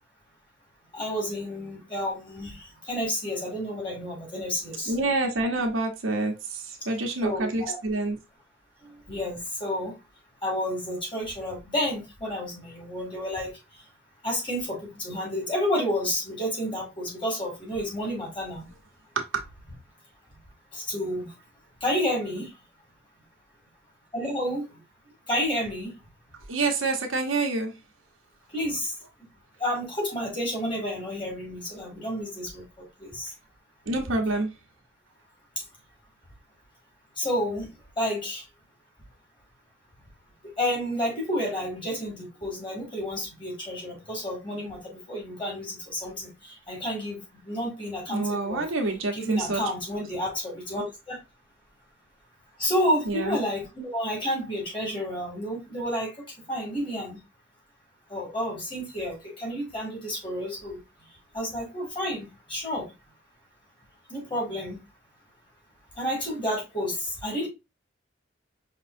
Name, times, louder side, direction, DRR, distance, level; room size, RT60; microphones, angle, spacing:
voice 1, 0.9-4.9 7.2-7.8 8.8-9.9 10.4-13.5 14.2-18.7 20.7-21.3 21.8-22.5 24.1-24.7 25.3-25.9 28.5-28.9 29.6-32.6 33.0-33.3 37.2-37.7 38.0-38.4 40.6-48.6 49.1-51.2 52.6-56.1 56.5-57.2 58.1-60.8 61.3-62.9 64.1-64.8 66.0-67.5, equal, 25° left, 2.0 m, -30 dB
voice 2, 4.9-8.2 19.2-19.3 26.3-27.7 33.9-34.5 48.1-49.6 53.1-53.4, right 2 dB, 80° right, 1.0 m, -27 dB
5.4 x 3.0 x 2.6 m
head